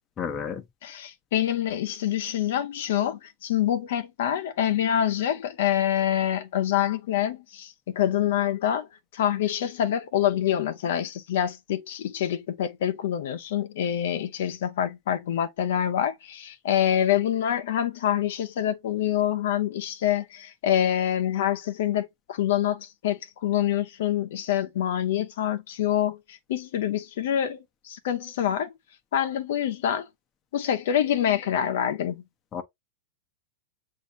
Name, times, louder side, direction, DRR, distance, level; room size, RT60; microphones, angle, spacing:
voice 1, 0.2-0.6 32.5-32.6, left 6 dB, 25° left, 0.8 m, -31 dB
voice 2, 0.8-8.9 9.1-28.7 29.1-30.1 30.5-32.2, left 10 dB, 70° left, 0.8 m, -26 dB
7.1 x 2.7 x 2.6 m
supercardioid pair, 140°, 0 cm